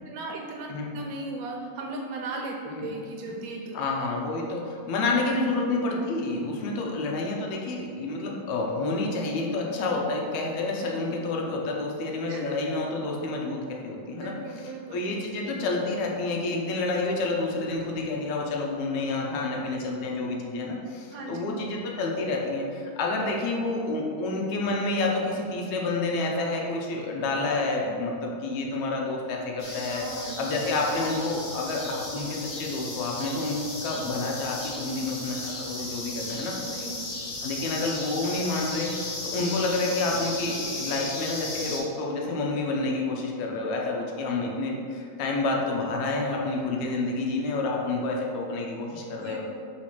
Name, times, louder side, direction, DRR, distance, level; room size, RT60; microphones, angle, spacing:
voice 1, 0.0-0.7 0.9-3.8 6.8-6.9 12.3-12.4 14.1-15.0 21.1-21.5 29.7-30.4 36.3-37.3 49.2-49.5, right 3 dB, 75° right, 0 dB, 1.7 m, -37 dB
voice 2, 3.7-14.3 14.9-36.5 37.4-49.5, left 2 dB, 75° left, -1 dB, 2.1 m, -29 dB
sound 1, 29.6-41.8, left 2 dB, 60° left, 2.2 m, -35 dB
4.7 x 4.1 x 5.8 m, 2.4 s
omnidirectional pair, 3.3 m